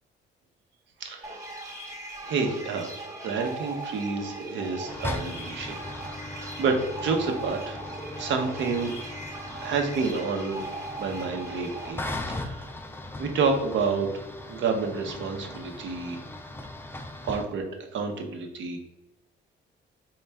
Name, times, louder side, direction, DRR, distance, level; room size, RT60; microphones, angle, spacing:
voice 1, 1.0-1.4 2.2-5.8 6.2-7.8 8.2-8.9 9.6-10.6 10.9-12.0 12.3-12.7 13.2-14.1 14.5-16.2 17.2-17.6 17.9-18.8, right 4 dB, 75° right, 4 dB, 0.8 m, -29 dB
sound 1, 1.2-11.9, right 2 dB, 15° right, 1.1 m, -39 dB
sound 2, 4.9-17.4, left 2 dB, 10° left, 0.4 m, -38 dB
4.3 x 2.4 x 3.4 m, 0.99 s
cardioid pair, 90°, 20 cm